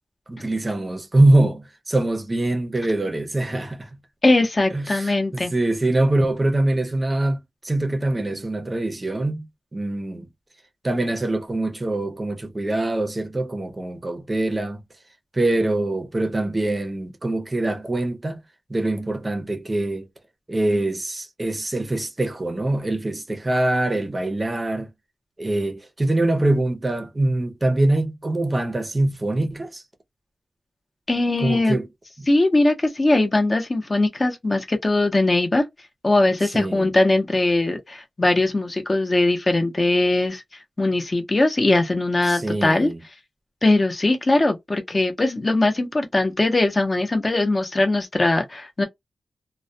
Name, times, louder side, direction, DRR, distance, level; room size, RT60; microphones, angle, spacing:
voice 1, 0.3-3.9 4.7-9.5 9.7-10.3 10.8-14.8 15.3-18.4 18.7-20.1 20.5-24.9 25.4-29.8 31.4-31.9 32.2-32.3 36.5-36.9 42.2-43.0, right 2 dB, 25° right, 0.6 m, -23 dB
voice 2, 4.2-5.5 31.1-31.8 32.3-35.6 36.0-40.4 40.8-42.9 43.6-48.8, left 2 dB, 30° left, 0.7 m, -20 dB
2.2 x 2.1 x 2.6 m
wide cardioid pair, 125°, 0 cm